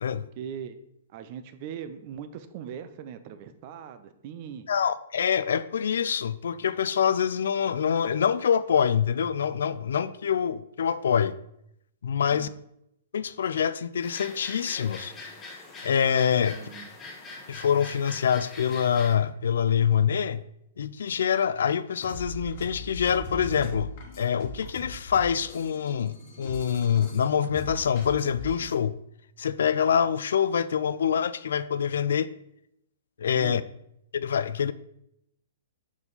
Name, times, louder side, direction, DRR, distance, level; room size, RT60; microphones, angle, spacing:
voice 1, 0.4-0.8 1.1-4.7 12.3-12.5 16.5-16.9 33.4-33.6, right 8 dB, 45° right, 11 dB, 0.6 m, -40 dB
voice 2, 4.7-11.3 12.0-12.5 13.1-15.1 15.8-16.6 17.5-20.4 20.8-23.9 24.2-28.9 29.4-32.3 33.2-33.6 34.1-34.7, left 8 dB, 75° left, 15 dB, 0.3 m, -25 dB
sound 1, 14.0-19.2, left 3 dB, 20° left, 1.1 m, -43 dB
sound 2, 21.8-28.8, equal, 45° left, 1.2 m, -40 dB
5.4 x 4.7 x 4.0 m, 0.77 s
hypercardioid pair, 135°, 0 cm